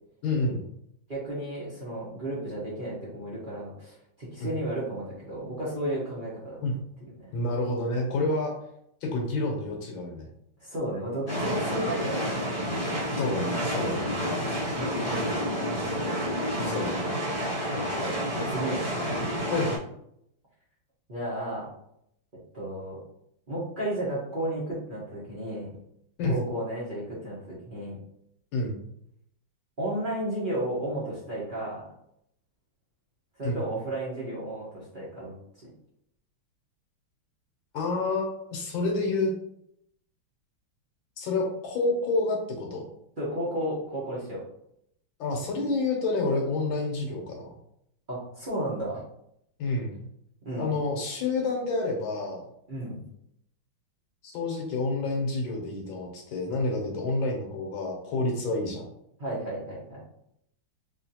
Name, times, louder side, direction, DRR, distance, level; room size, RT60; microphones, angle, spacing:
voice 1, 0.2-0.6 4.4-4.5 6.6-6.8 7.3-8.5 9.0-10.3 13.2-14.1 16.6-17.1 19.5-19.7 26.2-26.4 28.5-28.8 33.4-33.6 37.7-39.3 41.2-42.8 45.2-47.6 49.6-50.1 50.6-52.4 54.2-58.8, left 2 dB, 70° left, 0 dB, 1.4 m, -29 dB
voice 2, 1.1-6.6 7.0-7.2 10.6-12.6 13.9-14.2 14.8-16.3 17.7-18.9 21.1-21.7 22.5-23.0 23.5-25.7 26.3-27.9 29.8-31.8 33.4-35.3 43.2-44.4 48.1-49.1 50.4-50.7 52.7-53.0 59.2-60.0, right 1 dB, 40° right, -8 dB, 0.8 m, -33 dB
Ambiente - parque eolico, 11.3-19.8, equal, 45° left, 0.7 m, -29 dB
3.8 x 2.7 x 2.8 m, 0.74 s
omnidirectional pair, 2.4 m